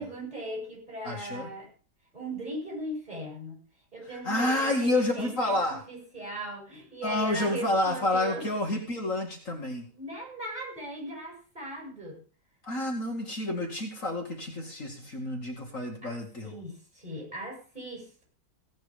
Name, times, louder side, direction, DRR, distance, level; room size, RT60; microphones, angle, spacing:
voice 1, 0.0-1.7 2.1-3.6 3.9-8.5 9.9-12.2 16.0-16.2 16.4-18.2, right 1 dB, 25° right, 0 dB, 7.4 m, -38 dB
voice 2, 1.0-1.5 4.2-5.8 7.0-9.9 12.6-16.6, left 1 dB, 50° left, 2 dB, 2.5 m, -29 dB
16.5 x 9.2 x 5.1 m, 0.38 s
omnidirectional pair, 1.8 m